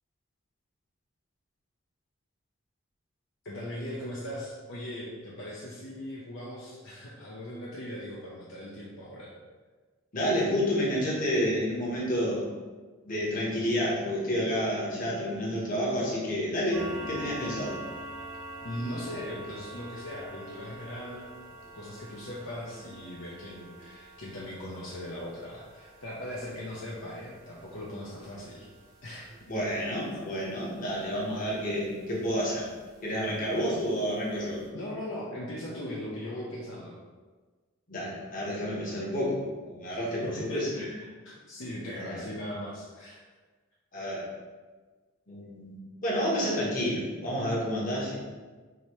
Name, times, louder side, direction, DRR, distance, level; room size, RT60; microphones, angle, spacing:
voice 1, 3.4-9.3 18.6-21.2 21.7-28.7 29.0-29.3 34.7-37.0 40.2-43.2, left 1 dB, 65° left, -6 dB, 0.6 m, -39 dB
voice 2, 10.1-12.5 13.0-17.8 29.5-32.6 33.0-34.6 37.9-40.7 41.9-42.3 43.9-44.3 45.3-48.1, equal, 40° left, -5 dB, 1.1 m, -30 dB
sound 1, 16.7-31.8 32.2-32.4 32.9-33.0 33.4-33.5 34.0-34.1 34.3-34.5, right 1 dB, 75° right, 1.2 m, -45 dB
4.9 x 2.8 x 3.0 m, 1.4 s
head